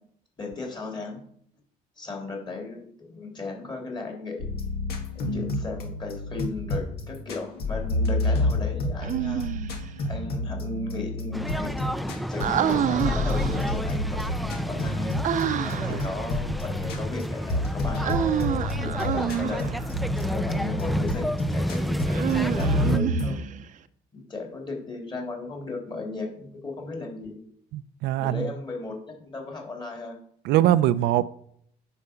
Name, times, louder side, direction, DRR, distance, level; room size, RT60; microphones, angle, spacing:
voice 1, 0.4-1.3 2.0-4.5 5.1-9.5 10.1-15.1 15.6-23.4 24.1-27.4 28.2-29.0 29.2-30.2, left 3 dB, 25° left, 3.4 m, -36 dB
sound 1, 4.4-23.3, left 1 dB, 70° left, 2.0 m, -30 dB
Human voice, 9.0-9.9 12.4-13.7 15.2-16.0 18.0-19.8 22.1-23.7, right 10 dB, 50° right, 0.6 m, -28 dB
sound 2, 11.3-23.0, equal, ahead, 0.4 m, -30 dB
voice 2, 27.7-28.5 30.4-31.2, right 13 dB, 85° right, 0.5 m, -23 dB
9.7 x 4.9 x 6.9 m
cardioid pair, 110°, 17 cm